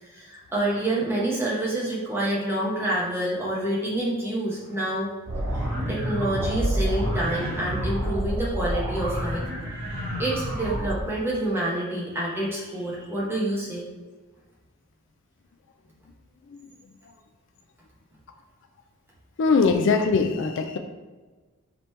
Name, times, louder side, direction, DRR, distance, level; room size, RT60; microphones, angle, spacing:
voice 1, 0.0-5.1 5.5-9.5 10.2-13.9, right 1 dB, 10° right, -5 dB, 1.0 m, -28 dB
sound 1, 5.3-11.0, equal, 75° right, 1.2 m, -28 dB
voice 2, 19.4-20.8, left 4 dB, 55° left, 6 dB, 0.4 m, -21 dB
5.1 x 2.9 x 3.3 m, 1.3 s
head